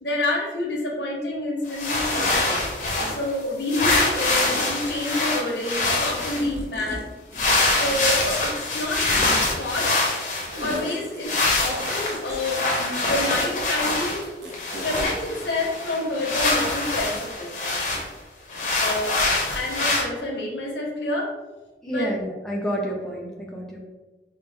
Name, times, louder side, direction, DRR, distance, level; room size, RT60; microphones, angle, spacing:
voice 1, 0.0-2.6 3.1-7.0 7.7-9.9 10.6-11.3 11.6-14.2 14.8-17.5 18.8-19.2 19.5-21.3 21.9-22.2, left 1 dB, 75° left, -1 dB, 0.9 m, -28 dB
sound 1, 1.2-1.3 2.1-2.4 3.0-3.1 4.4-4.8 6.4-7.0 7.3-8.2 9.1-9.4 10.5-13.1 13.4-13.5 13.8-13.9 14.2-15.1, right 1 dB, 70° right, 0.8 m, -36 dB
sound 2, 1.7-3.4 3.7-6.4 7.3-11.0 11.2-14.2 14.5-18.1 18.5-20.0, left 2 dB, 45° left, 0.6 m, -25 dB
voice 2, 21.8-23.9, equal, 5° left, -3 dB, 0.3 m, -29 dB
4.3 x 2.0 x 3.3 m, 1.2 s
head